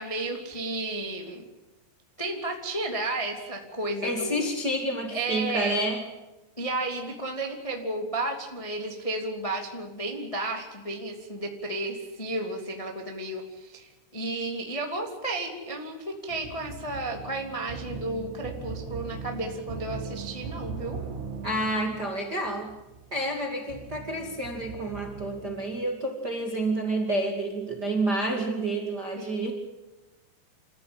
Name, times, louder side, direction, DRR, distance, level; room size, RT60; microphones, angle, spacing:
voice 1, 0.0-1.5 2.2-4.4 5.1-5.8 6.6-21.0 29.1-29.5, right 2 dB, 15° left, 2 dB, 1.0 m, -33 dB
voice 2, 4.0-6.0 21.4-22.7 23.1-29.5, right 1 dB, 35° right, 2 dB, 1.7 m, -29 dB
sound 1, 16.3-25.7, right 5 dB, 75° right, 5.1 m, -40 dB
29.0 x 14.5 x 9.0 m, 1.1 s
omnidirectional pair, 5.9 m